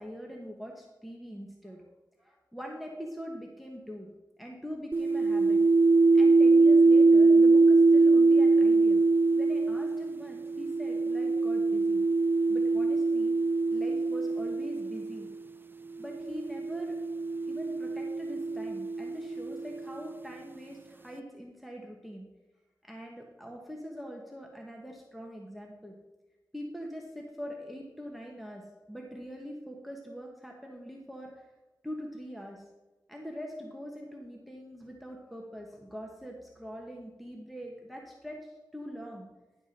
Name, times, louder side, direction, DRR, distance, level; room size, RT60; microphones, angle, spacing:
voice 1, 0.0-1.8 2.2-4.1 4.4-5.6 6.1-9.0 9.3-12.0 12.5-13.3 13.7-15.3 16.0-17.0 17.4-22.3 22.8-25.9 26.5-31.3 31.8-32.6 33.1-39.3, equal, ahead, 0 dB, 1.2 m, -43 dB
sound 1, 4.9-15.3 16.2-19.9, right 3 dB, 30° right, 0.3 m, -23 dB
10.5 x 7.1 x 4.2 m, 1.1 s
wide cardioid pair, 95°, 8 cm